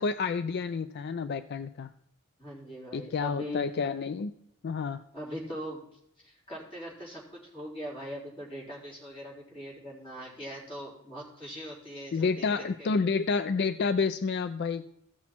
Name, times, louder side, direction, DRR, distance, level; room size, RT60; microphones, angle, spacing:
voice 1, 0.0-1.9 2.9-4.3 4.6-5.0 12.1-14.9, left 4 dB, 50° left, 12 dB, 0.4 m, -29 dB
voice 2, 2.4-3.7 5.1-12.9, equal, 25° left, -5 dB, 4.1 m, -41 dB
15.0 x 6.2 x 4.4 m, 0.74 s
head